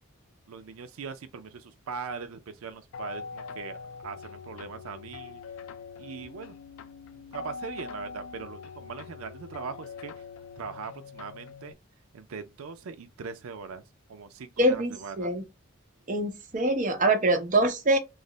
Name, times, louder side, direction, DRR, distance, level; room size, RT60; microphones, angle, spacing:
voice 1, 0.5-3.8 4.0-5.4 6.0-6.6 7.1-10.3 10.6-11.8 12.1-13.8 14.1-15.3, right 5 dB, 90° right, 0.4 m, -40 dB
sound 1, 2.9-11.7, left 5 dB, 80° left, 0.3 m, -43 dB
voice 2, 14.6-15.4 16.1-18.0, right 1 dB, 40° right, 0.7 m, -24 dB
3.1 x 2.0 x 3.7 m
head